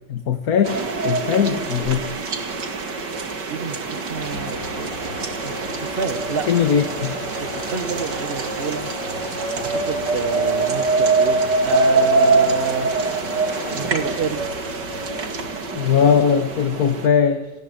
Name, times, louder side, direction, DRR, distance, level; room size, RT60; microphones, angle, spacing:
voice 1, 0.1-2.0 6.5-7.1 15.7-17.5, left 7 dB, 50° left, 9 dB, 1.7 m, -19 dB
sound 1, 0.6-17.1, right 4 dB, 60° right, 2.9 m, -24 dB
voice 2, 3.5-5.1 5.4-6.5 7.3-8.9 9.5-12.9 13.7-14.4, right 4 dB, 30° right, 10 dB, 1.7 m, -28 dB
sound 2, 4.1-15.5, left 1 dB, 70° left, 5.4 m, -36 dB
29.0 x 19.5 x 10.0 m, 0.92 s
omnidirectional pair, 2.1 m